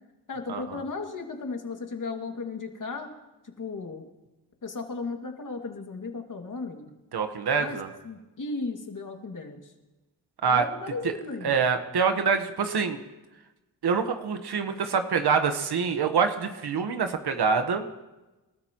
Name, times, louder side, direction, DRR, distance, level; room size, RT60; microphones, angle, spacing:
voice 1, 0.3-3.1 3.6-4.1 4.6-6.9 7.6-7.8 8.0-9.7 10.4-11.5, left 4 dB, 50° left, 3 dB, 2.3 m, -35 dB
voice 2, 7.1-7.9 10.4-10.7 11.4-13.0 13.8-17.8, right 5 dB, 70° right, 7 dB, 1.3 m, -25 dB
28.0 x 13.0 x 3.0 m, 1.1 s
cardioid pair, 70°, 41 cm